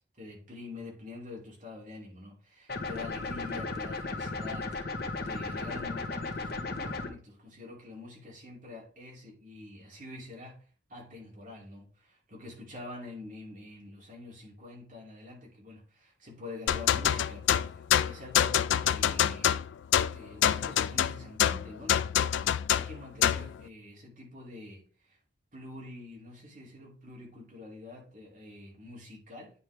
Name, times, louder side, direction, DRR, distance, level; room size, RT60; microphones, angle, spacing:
voice 1, 0.0-10.6 10.9-19.6 20.1-22.1 22.7-25.2 25.5-29.5, left 2 dB, 45° right, -3 dB, 2.6 m, -46 dB
sound 1, 2.7-7.1, left 3 dB, 55° left, 0.9 m, -35 dB
sound 2, 16.7-23.5, left 10 dB, 80° left, 0.3 m, -26 dB
9.3 x 4.4 x 3.3 m, 0.40 s
head